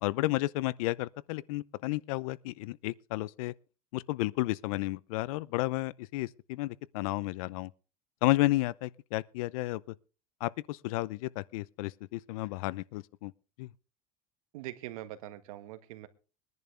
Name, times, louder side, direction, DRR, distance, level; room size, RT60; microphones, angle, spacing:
voice 1, 0.0-3.5 3.9-7.7 8.2-9.9 10.4-13.3 13.6-13.7, left 19 dB, 80° left, 0.6 m, -32 dB
voice 2, 14.5-16.1, right 14 dB, 85° right, 1.6 m, -43 dB
22.0 x 11.0 x 3.4 m
supercardioid pair, 125°, 18 cm